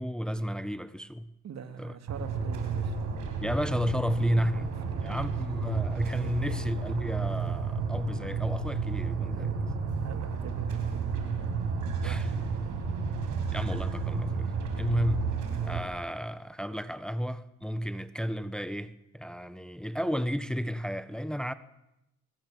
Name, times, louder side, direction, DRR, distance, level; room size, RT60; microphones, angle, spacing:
voice 1, 0.0-1.3 1.8-1.9 3.4-4.7 5.0-9.5 12.0-12.3 13.5-21.5, equal, 5° left, 1.3 m, -32 dB
voice 2, 1.4-3.0 4.6-5.3 6.2-6.5 9.3-9.6 10.0-11.3 11.7-12.8, right 7 dB, 60° right, 2.8 m, -45 dB
sound 1, 2.1-15.8, right 5 dB, 85° right, 5.9 m, -31 dB
24.0 x 21.0 x 7.9 m
cardioid pair, 90°, 30 cm